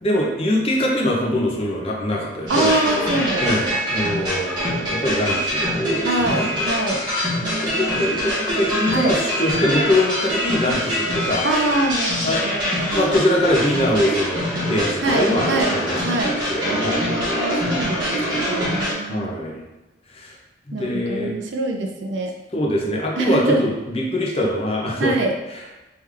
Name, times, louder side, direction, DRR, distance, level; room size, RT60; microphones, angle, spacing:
voice 1, 0.0-2.7 3.3-6.5 7.6-11.5 12.2-12.6 12.9-16.0 16.5-17.0 19.1-19.6 20.1-20.3 20.7-21.3 22.5-25.2, left 1 dB, 30° left, -2 dB, 0.6 m, -23 dB
sound 1, 2.5-18.9, equal, 25° right, 1.4 m, -24 dB
voice 2, 2.5-3.8 6.0-7.0 7.4-8.1 8.9-9.2 11.4-13.2 15.0-15.8 16.0-16.4 16.6-19.3 20.7-22.3 23.2-23.6 25.0-25.3, right 2 dB, 70° right, 2 dB, 0.5 m, -24 dB
3.6 x 3.3 x 3.3 m, 1.1 s
head